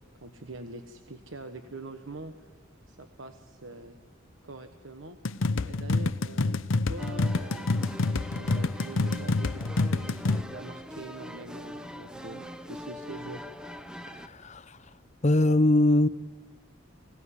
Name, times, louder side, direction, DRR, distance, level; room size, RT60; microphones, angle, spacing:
voice 1, 0.2-2.6 2.9-4.0 4.4-5.2 5.6-7.7 8.3-13.4, right 2 dB, 75° right, 7 dB, 1.3 m, -44 dB
sound 1, 5.2-10.4, left 3 dB, 80° left, 0.8 m, -27 dB
sound 2, 7.0-14.3, equal, 5° right, 0.8 m, -42 dB
voice 2, 14.3-14.6 15.2-16.1, left 1 dB, 35° left, 15 dB, 0.7 m, -21 dB
26.0 x 18.0 x 9.8 m, 1.5 s
head